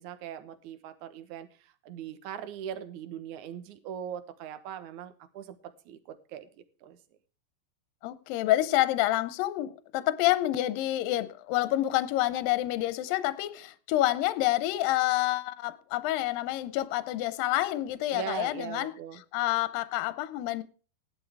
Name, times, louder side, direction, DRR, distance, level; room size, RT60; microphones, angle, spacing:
voice 1, 0.0-7.0 18.1-19.2, right 9 dB, 65° right, 2.2 m, -40 dB
voice 2, 8.0-18.9 19.3-20.6, left 15 dB, 75° left, 2.4 m, -28 dB
16.0 x 11.0 x 3.5 m
omnidirectional pair, 4.4 m